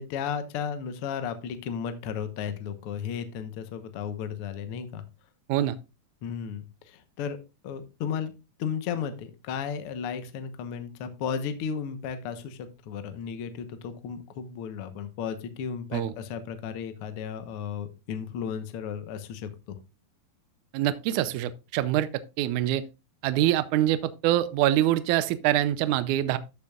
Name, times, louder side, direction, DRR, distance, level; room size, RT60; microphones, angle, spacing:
voice 1, 0.0-5.0 6.2-7.4 7.6-8.3 8.6-19.8, left 7 dB, 80° left, 1.2 m, -34 dB
voice 2, 20.7-22.1 22.4-22.8 23.2-26.4, right 13 dB, 80° right, 1.8 m, -24 dB
13.5 x 7.0 x 2.4 m
omnidirectional pair, 4.2 m